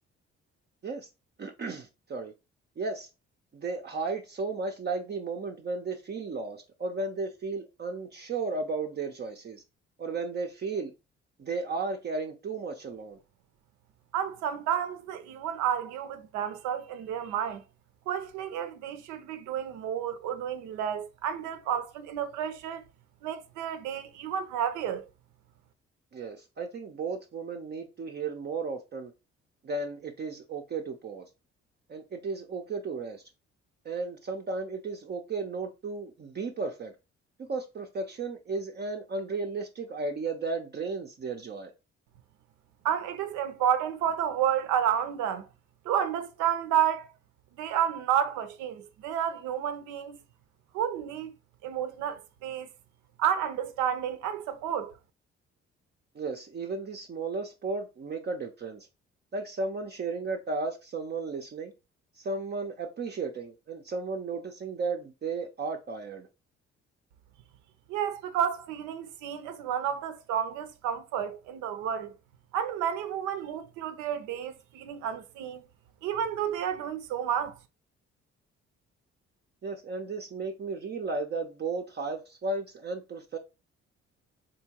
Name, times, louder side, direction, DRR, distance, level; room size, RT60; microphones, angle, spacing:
voice 1, 1.4-2.3 2.8-3.1 3.5-9.6 10.0-10.9 11.4-13.2 26.1-29.1 29.6-31.3 31.9-33.2 33.8-36.9 37.4-41.7 56.1-58.9 59.3-61.7 62.2-66.3 79.6-83.4, right 3 dB, 35° right, 0.5 m, -34 dB
voice 2, 14.1-17.6 18.1-22.8 23.2-25.1 42.8-45.5 45.8-47.1 47.5-50.2 50.7-51.3 51.6-52.7 53.2-54.9 67.9-72.1 72.5-75.6 76.0-77.6, right 9 dB, 80° right, 0.6 m, -31 dB
3.6 x 2.7 x 2.8 m
supercardioid pair, 55°, 29 cm